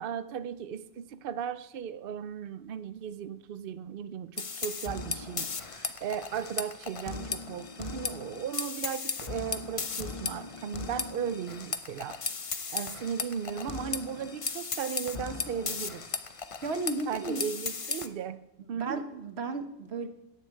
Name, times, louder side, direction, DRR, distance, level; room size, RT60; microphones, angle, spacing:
voice 1, 0.0-12.2 12.5-16.0 17.1-19.0, right 8 dB, 70° right, 13 dB, 0.5 m, -36 dB
sound 1, 4.4-18.1, left 4 dB, 50° left, 0.4 m, -36 dB
voice 2, 16.6-17.4 18.7-20.1, right 3 dB, 45° right, 8 dB, 1.2 m, -34 dB
11.0 x 9.6 x 8.4 m, 0.87 s
omnidirectional pair, 1.6 m